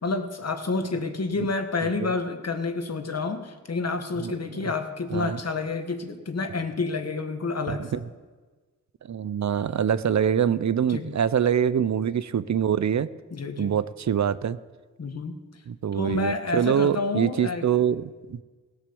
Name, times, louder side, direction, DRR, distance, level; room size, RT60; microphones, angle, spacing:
voice 1, 0.0-8.0 10.9-11.1 13.3-13.7 15.0-15.4 15.9-17.7, left 3 dB, 55° left, 6 dB, 1.5 m, -29 dB
voice 2, 7.7-8.0 9.1-13.1 13.6-14.6 15.7-18.4, right 8 dB, 65° right, 16 dB, 0.6 m, -24 dB
17.5 x 6.8 x 6.9 m, 1.3 s
cardioid pair, 50°, 31 cm